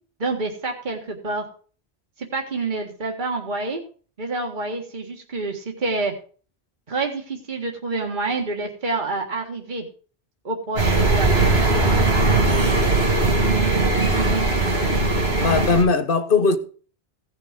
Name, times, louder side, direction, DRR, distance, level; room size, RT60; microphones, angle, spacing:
voice 1, 0.2-1.5 2.2-3.8 4.2-6.1 6.9-9.8 10.4-11.5, right 3 dB, 50° right, 1.8 m, -27 dB
sound 1, 10.8-15.8, right 2 dB, 80° right, 2.6 m, -19 dB
voice 2, 14.7-16.6, left 4 dB, 60° left, 1.2 m, -21 dB
16.5 x 6.2 x 5.1 m
omnidirectional pair, 1.0 m